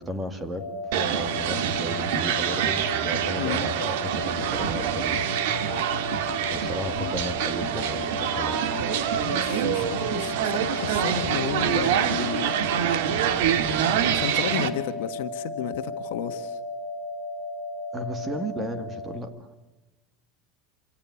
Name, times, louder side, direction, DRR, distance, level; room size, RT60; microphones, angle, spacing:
voice 1, 0.0-5.2 6.5-8.6 17.9-19.3, equal, 15° right, 9 dB, 2.2 m, -34 dB
sound 1, 0.6-19.2, left 2 dB, 30° left, 4.2 m, -35 dB
sound 2, 0.9-14.7, right 9 dB, 75° right, 1.7 m, -26 dB
sound 3, 4.4-5.7 6.4-6.6 6.9-8.1 8.8-10.4 10.9-12.4 12.7-12.8 13.1-14.3, right 3 dB, 35° right, 3.9 m, -42 dB
voice 2, 9.2-12.5 13.5-13.7 14.1-16.6, left 13 dB, 75° left, 9 dB, 1.5 m, -33 dB
26.0 x 17.5 x 9.8 m, 1.1 s
supercardioid pair, 160°, 0 cm